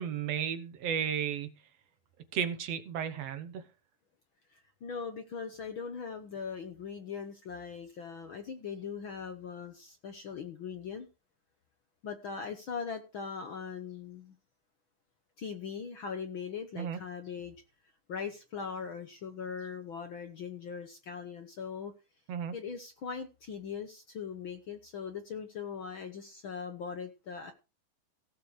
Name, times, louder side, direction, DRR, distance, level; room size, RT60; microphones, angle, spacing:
voice 1, 0.0-1.5 2.3-3.6 16.8-17.0 22.3-22.5, right 8 dB, 60° right, 10 dB, 2.0 m, -33 dB
voice 2, 4.5-11.1 12.0-14.4 15.4-17.5 18.1-21.9 22.5-27.5, left 6 dB, 65° left, 7 dB, 1.2 m, -40 dB
16.5 x 6.9 x 4.9 m, 0.30 s
omnidirectional pair, 3.8 m